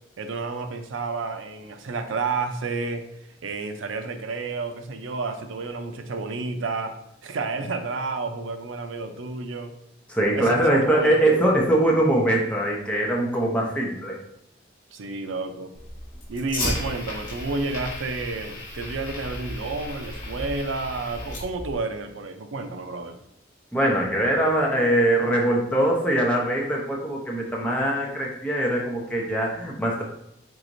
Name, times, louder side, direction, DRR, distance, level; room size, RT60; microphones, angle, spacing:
voice 1, 0.2-3.0 3.4-7.0 7.2-9.7 10.4-11.3 14.9-15.7 16.3-23.2, right 3 dB, 90° right, 8 dB, 0.5 m, -30 dB
voice 2, 10.1-14.2 23.7-30.0, right 1 dB, 5° left, -3 dB, 0.7 m, -22 dB
Fire, 15.7-21.7, left 1 dB, 45° left, 1.5 m, -34 dB
4.6 x 4.1 x 2.6 m, 0.76 s
head